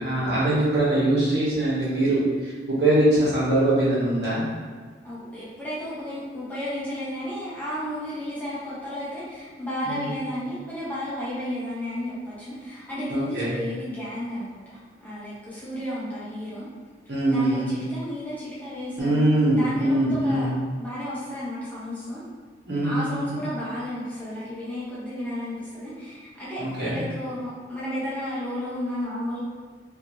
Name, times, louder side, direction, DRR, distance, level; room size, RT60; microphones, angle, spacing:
voice 1, 0.0-4.4 9.8-10.2 13.1-13.5 17.1-17.7 19.0-20.5 22.7-23.4 26.6-27.0, right 1 dB, 65° right, -8 dB, 1.2 m, -22 dB
voice 2, 5.0-16.7 17.3-20.5 20.8-22.2 22.8-29.4, left 1 dB, 10° left, -10 dB, 0.8 m, -33 dB
3.1 x 2.7 x 2.6 m, 1.5 s
head